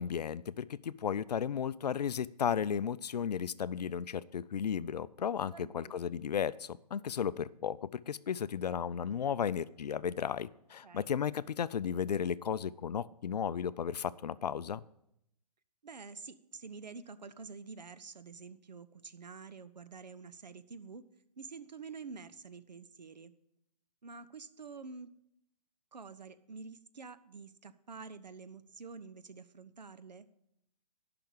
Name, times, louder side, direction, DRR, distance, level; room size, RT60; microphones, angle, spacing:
voice 1, 0.0-14.8, left 8 dB, 75° left, 18 dB, 0.5 m, -34 dB
voice 2, 5.5-5.9 10.8-11.1 15.8-21.0 21.4-23.3 24.0-25.1 25.9-30.3, right 4 dB, 85° right, 12 dB, 0.9 m, -48 dB
10.5 x 5.9 x 8.6 m, 0.77 s
hypercardioid pair, 135°, 21 cm